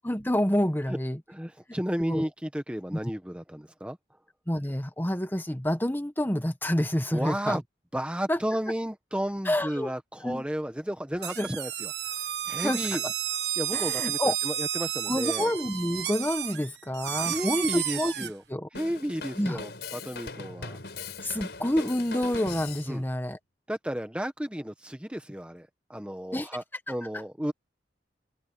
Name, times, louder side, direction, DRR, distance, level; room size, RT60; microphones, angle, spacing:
voice 1, 0.0-1.2 2.0-2.3 2.9-3.0 4.5-7.6 8.3-8.4 9.4-9.9 10.2-10.4 11.4-11.5 12.6-13.1 13.7-14.3 15.1-18.7 19.4-19.6 21.2-23.4 26.3-26.5, left 1 dB, 10° left, 1.3 m, -28 dB
voice 2, 1.3-4.0 7.1-7.6 7.9-11.9 12.5-13.0 13.6-15.5 17.2-18.4 18.7-20.8 22.9-23.0 23.7-27.5, equal, 5° right, 1.1 m, -33 dB
sound 1, 11.2-18.3, right 11 dB, 75° right, 1.5 m, -32 dB
Drum kit, 18.7-22.9, left 4 dB, 75° left, 4.9 m, -40 dB
head